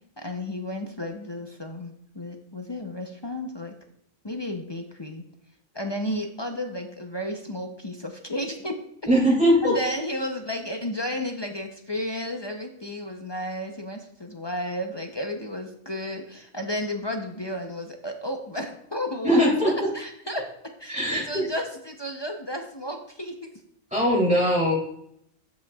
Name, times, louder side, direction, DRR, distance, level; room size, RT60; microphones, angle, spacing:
voice 1, 0.2-3.8 4.2-5.2 5.7-8.8 9.6-23.5, left 1 dB, 25° left, 2 dB, 0.6 m, -33 dB
voice 2, 9.1-9.7 19.2-19.7 20.9-21.5 23.9-24.7, equal, 5° right, -4 dB, 2.8 m, -20 dB
13.5 x 5.3 x 2.4 m, 0.72 s
omnidirectional pair, 1.3 m